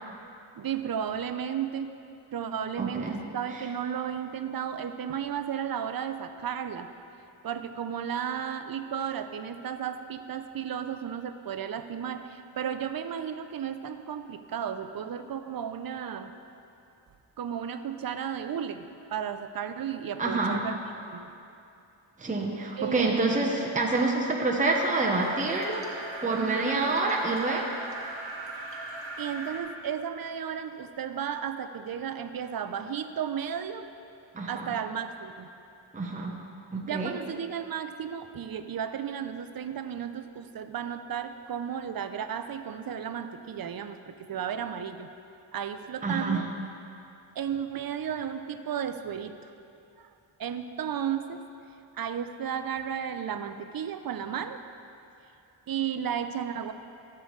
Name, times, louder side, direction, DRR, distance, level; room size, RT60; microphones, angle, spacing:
voice 1, 0.6-1.9 2.3-6.9 7.4-16.3 17.4-20.8 21.1-21.3 22.8-23.2 26.4-26.9 28.9-33.9 34.4-35.5 36.8-45.1 45.5-46.5 47.4-49.5 50.0-50.1 50.4-51.5 51.9-54.6 55.7-56.7, right 8 dB, 45° right, 9 dB, 0.5 m, -34 dB
voice 2, 2.8-3.2 20.2-20.6 22.2-27.7 34.3-34.7 35.9-36.3 36.7-37.1 46.0-46.4, right 3 dB, 15° right, 0 dB, 0.8 m, -27 dB
sound 1, 24.6-29.6, right 2 dB, 60° right, 1.5 m, -39 dB
13.5 x 6.9 x 3.2 m, 2.7 s
wide cardioid pair, 85°, 50 cm